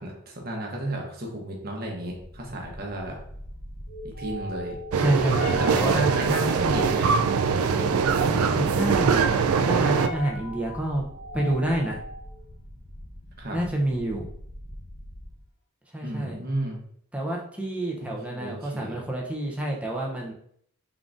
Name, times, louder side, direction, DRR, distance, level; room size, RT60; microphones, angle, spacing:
voice 1, 0.0-3.2 4.0-4.8 5.6-7.1 13.4-13.6 16.0-16.8 18.0-19.0, right 1 dB, 45° right, 0 dB, 0.9 m, -32 dB
sound 1, 2.1-15.4, equal, 35° left, 0.6 m, -38 dB
voice 2, 4.9-6.0 8.2-11.1 11.3-12.0 13.5-14.3 15.9-16.4 17.1-20.3, right 1 dB, 5° right, -1 dB, 0.6 m, -28 dB
sound 2, 4.9-10.1, right 6 dB, 75° right, 0.3 m, -22 dB
3.7 x 3.6 x 2.5 m, 0.67 s
head